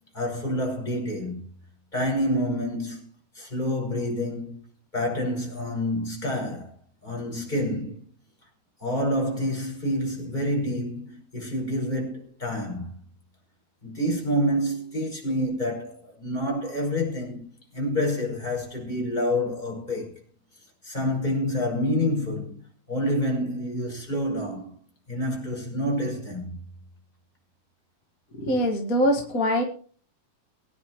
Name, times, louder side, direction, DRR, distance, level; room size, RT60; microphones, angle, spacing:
voice 1, 0.1-1.5 1.9-3.1 3.3-4.6 4.9-6.7 7.0-8.1 8.8-13.0 13.8-17.4 17.7-20.1 20.8-24.8 25.1-26.6, equal, 10° left, 5.7 m, -28 dB
voice 2, 28.3-29.6, equal, 30° left, 1.7 m, -23 dB
23.5 x 10.5 x 3.1 m
omnidirectional pair, 4.0 m